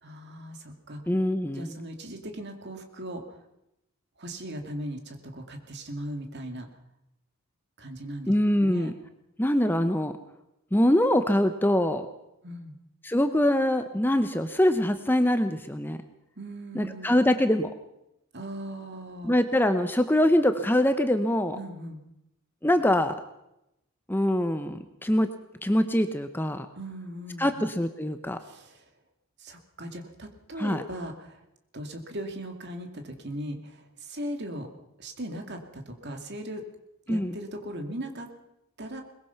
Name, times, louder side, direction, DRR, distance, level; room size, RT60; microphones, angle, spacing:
voice 1, 0.0-1.0 1.5-3.2 4.2-6.7 7.8-8.3 8.6-8.9 12.4-12.8 16.4-17.1 18.3-19.4 21.6-22.0 26.8-27.6 28.4-28.8 29.4-31.4 31.7-34.7 35.0-36.6 37.1-38.3 38.8-39.0, right 1 dB, 50° right, 4 dB, 2.5 m, -38 dB
voice 2, 1.1-1.8 8.3-8.9 9.4-10.1 10.7-12.1 13.0-16.0 16.7-17.7 19.2-21.6 22.6-23.1 24.1-25.3 25.6-26.7 27.4-28.4 30.6-30.8 37.1-37.4, left 1 dB, 10° left, 8 dB, 0.8 m, -24 dB
22.0 x 21.0 x 5.8 m, 0.86 s
head